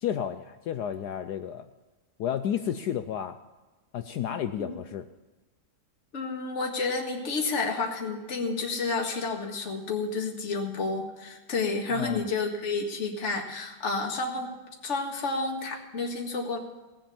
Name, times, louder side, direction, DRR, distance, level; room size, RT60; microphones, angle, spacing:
voice 1, 0.0-1.7 2.2-3.4 3.9-5.0 11.9-12.2, left 9 dB, 70° left, 9 dB, 1.0 m, -31 dB
voice 2, 6.1-14.5 14.8-16.6, left 3 dB, 40° left, 1 dB, 2.0 m, -30 dB
18.0 x 7.8 x 7.1 m, 1.2 s
omnidirectional pair, 2.1 m